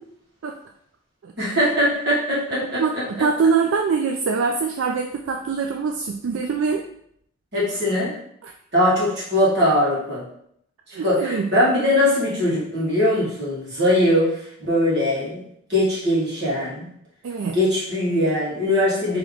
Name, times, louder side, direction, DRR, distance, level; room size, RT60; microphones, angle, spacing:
voice 1, 1.4-3.0 7.5-8.1 8.7-10.2 10.9-15.4 15.7-16.9 17.5-19.2, left 1 dB, 55° right, -7 dB, 1.6 m, -21 dB
voice 2, 3.2-6.8 8.4-8.5 10.9-11.5 17.2-17.6, right 5 dB, 75° right, 2 dB, 0.3 m, -23 dB
3.3 x 3.0 x 3.7 m, 0.71 s
head